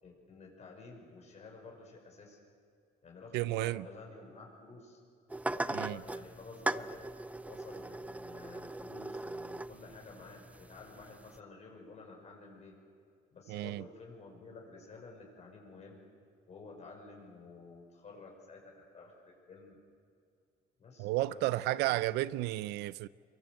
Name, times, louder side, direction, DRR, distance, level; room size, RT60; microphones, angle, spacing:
voice 1, 0.0-2.4 3.0-5.0 5.5-7.1 7.4-12.7 13.3-16.0 16.5-19.8 20.8-22.3, left 3 dB, 40° left, 5.7 m, -51 dB
voice 2, 3.3-3.9 5.7-6.0 13.5-13.9 21.0-23.1, right 17 dB, 85° right, 0.5 m, -32 dB
sound 1, 5.3-11.4, right 2 dB, 10° right, 0.5 m, -40 dB
23.5 x 23.0 x 7.7 m
cardioid pair, 110°, 17 cm